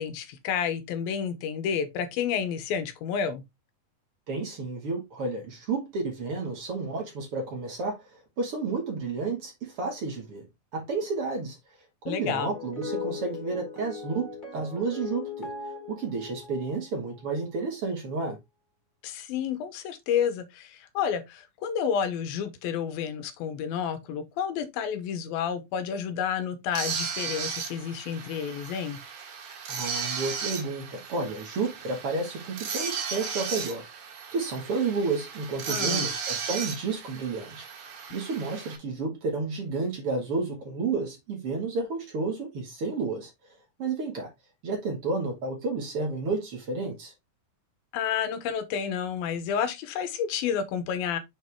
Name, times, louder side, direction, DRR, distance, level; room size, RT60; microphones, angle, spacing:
voice 1, 0.0-3.4 12.1-12.5 19.0-29.0 35.7-36.1 47.9-51.2, left 7 dB, 85° left, 2.7 m, -30 dB
voice 2, 4.3-10.4 10.7-11.6 12.1-15.5 15.9-18.4 29.7-33.8 34.3-37.7 38.1-43.3 43.8-44.3 44.6-47.1, right 3 dB, 45° right, 2.3 m, -31 dB
sound 1, 12.3-17.3, left 5 dB, 15° left, 3.2 m, -38 dB
sound 2, 26.7-38.8, right 6 dB, 60° right, 3.0 m, -35 dB
6.5 x 5.2 x 3.5 m
omnidirectional pair, 4.2 m